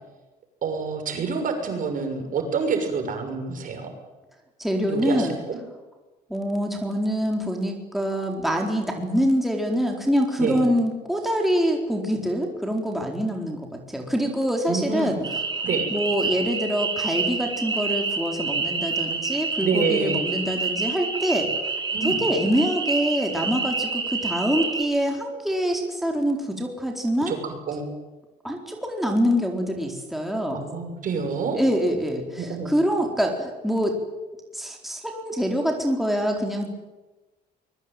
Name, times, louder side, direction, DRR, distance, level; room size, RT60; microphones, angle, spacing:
voice 1, 0.6-3.9 4.9-5.6 10.4-10.6 14.7-15.2 15.6-15.9 19.6-20.2 21.9-22.2 27.3-27.4 27.7-27.9 30.5-31.6 32.4-32.7, right 5 dB, 50° right, 5 dB, 6.6 m, -27 dB
voice 2, 4.6-5.4 6.3-15.2 15.9-21.5 22.0-27.4 28.4-30.6 31.5-34.0 34.5-36.7, equal, ahead, 1 dB, 4.3 m, -25 dB
sound 1, 15.2-24.8, right 4 dB, 25° right, 4.9 m, -28 dB
24.0 x 22.0 x 9.1 m, 1.2 s
cardioid pair, 110°, 17 cm